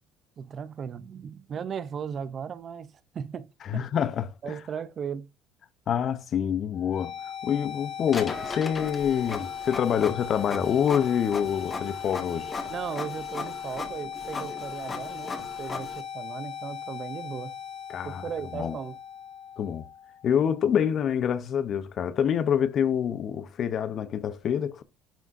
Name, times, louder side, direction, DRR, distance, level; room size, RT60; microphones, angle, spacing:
voice 1, 0.4-3.9 4.4-5.3 12.7-17.5 18.0-19.0, right 7 dB, 40° right, 0.5 m, -37 dB
voice 2, 3.6-4.3 5.9-7.1 7.4-12.5 17.9-18.3 18.5-18.8 19.6-19.8 20.2-24.8, left 8 dB, 50° left, 0.7 m, -26 dB
sound 1, 6.7-20.7, left 8 dB, 75° left, 3.6 m, -38 dB
Printer, 8.1-16.0, left 3 dB, 25° left, 1.7 m, -38 dB
10.5 x 3.6 x 2.6 m
cardioid pair, 110°, 0 cm